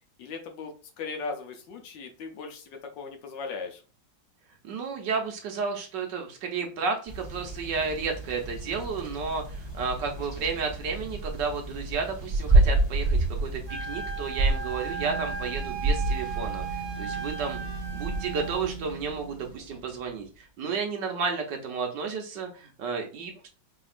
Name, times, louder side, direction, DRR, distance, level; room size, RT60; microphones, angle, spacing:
voice 1, 0.2-3.8 10.4-10.5 19.7-19.8, left 4 dB, 70° left, 4 dB, 1.4 m, -38 dB
voice 2, 4.6-13.6 13.9-17.6 17.9-23.5, right 5 dB, 70° right, 3 dB, 1.4 m, -32 dB
sound 1, 7.1-20.1, right 2 dB, 20° right, 0.9 m, -29 dB
Wind instrument woodwind instrument, 13.7-18.6, right 5 dB, 35° right, 0.6 m, -37 dB
5.1 x 2.8 x 2.4 m, 0.36 s
omnidirectional pair, 2.1 m